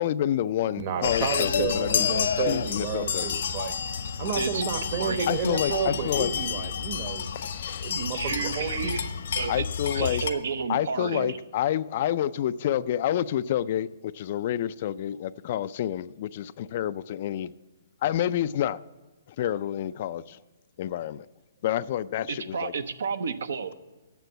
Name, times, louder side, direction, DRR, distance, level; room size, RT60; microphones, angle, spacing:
voice 1, 0.0-2.1 2.5-3.4 5.3-6.3 7.3-7.9 9.5-10.2 10.7-17.5 18.0-18.8 19.4-20.4 20.8-21.3 21.6-22.7, left 11 dB, 45° left, 0.3 m, -28 dB
voice 2, 0.8-3.8 4.2-7.3 7.8-9.0, right 6 dB, 45° right, 1.1 m, -31 dB
sound 1, 1.0-10.3, left 7 dB, 65° left, 0.9 m, -30 dB
voice 3, 8.1-9.0 9.3-9.6 9.9-11.4 22.3-23.7, right 5 dB, 75° right, 0.7 m, -31 dB
9.2 x 7.0 x 7.9 m
hypercardioid pair, 140°, 0 cm